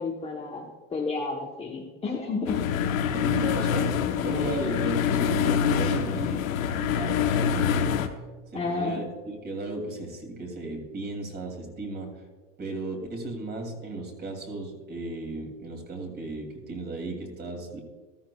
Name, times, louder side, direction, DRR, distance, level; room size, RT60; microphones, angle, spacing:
voice 1, 0.0-2.6 8.5-9.0, left 3 dB, 15° left, -1 dB, 1.0 m, -31 dB
sound 1, 2.5-8.1, left 8 dB, 80° left, 1.0 m, -25 dB
voice 2, 3.1-6.4 6.7-7.9 8.5-12.2 12.6-17.8, right 2 dB, 25° right, 2 dB, 2.7 m, -35 dB
14.0 x 13.5 x 2.3 m, 1.4 s
supercardioid pair, 125°, 40 cm